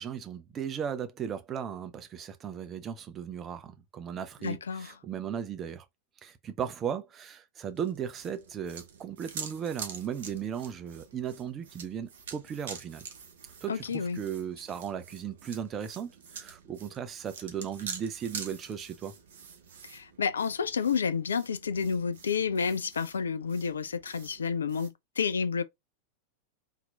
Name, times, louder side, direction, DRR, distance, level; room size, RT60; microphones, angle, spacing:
voice 1, 0.0-5.8 6.2-13.0 13.6-19.1, right 8 dB, 25° right, 0.5 m, -36 dB
voice 2, 4.4-4.9 13.7-14.2 19.8-25.6, left 6 dB, 70° left, 0.3 m, -30 dB
sound 1, 7.8-24.9, right 6 dB, 60° right, 0.8 m, -46 dB
3.8 x 2.9 x 2.4 m
figure-of-eight pair, 90°, 0 cm